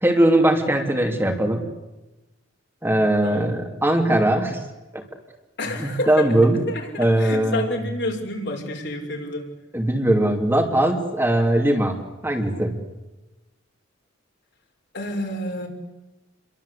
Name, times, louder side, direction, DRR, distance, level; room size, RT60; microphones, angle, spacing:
voice 1, 0.0-1.7 2.8-4.7 4.9-5.0 5.8-6.6 7.0-7.8 9.7-12.8, right 1 dB, 10° right, 3.0 m, -20 dB
voice 2, 3.2-3.5 5.6-9.5 14.9-15.7, left 1 dB, 60° left, 5.8 m, -29 dB
29.5 x 23.5 x 8.5 m
head